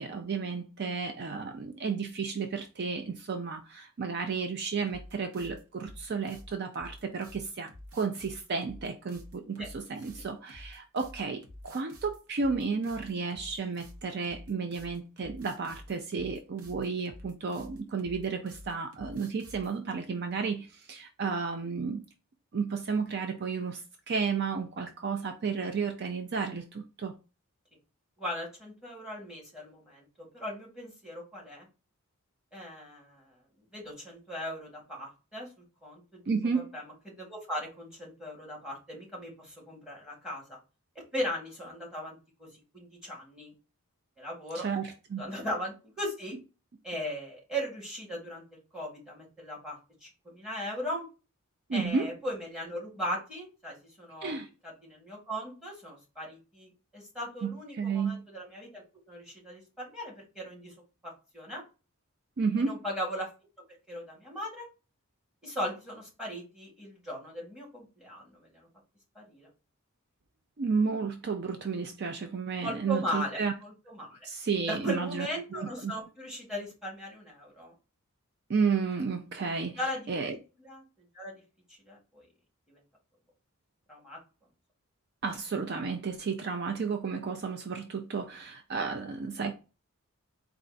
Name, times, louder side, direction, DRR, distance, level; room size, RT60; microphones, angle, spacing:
voice 1, 0.0-22.0 22.5-27.2 36.3-36.7 44.5-45.3 51.7-52.1 54.2-54.5 57.4-58.2 62.4-62.8 70.6-73.5 74.2-75.3 75.5-75.9 78.5-79.8 80.1-80.4 85.2-89.5, right 5 dB, 50° right, 0.4 m, -32 dB
sound 1, 4.9-19.8, equal, 85° right, 0.9 m, -49 dB
voice 2, 28.2-31.7 32.5-33.3 33.7-35.5 35.8-36.2 36.7-40.6 41.1-42.5 42.7-43.5 44.2-44.7 45.2-46.4 46.8-48.4 48.7-51.1 51.7-54.3 54.6-60.7 61.0-61.6 62.6-63.3 63.9-64.7 65.4-68.7 69.2-69.5 72.6-74.3 74.7-77.7 79.8-80.8 81.1-81.3 81.9-82.3 82.7-82.8 83.9-84.2, equal, 5° right, 1.8 m, -38 dB
4.4 x 2.4 x 3.8 m
head